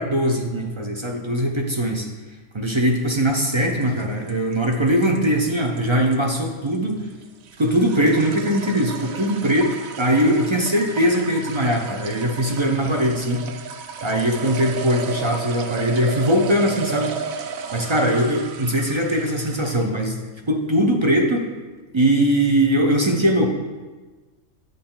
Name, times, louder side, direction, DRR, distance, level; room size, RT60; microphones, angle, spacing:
voice 1, 0.0-2.1 2.5-7.1 7.6-13.5 14.0-17.1 17.7-20.2 20.5-21.4 21.9-23.5, equal, 30° right, 2 dB, 0.5 m, -21 dB
sound 1, 2.8-20.0, right 5 dB, 85° right, 1.1 m, -34 dB
8.2 x 6.6 x 3.8 m, 1.3 s
omnidirectional pair, 1.4 m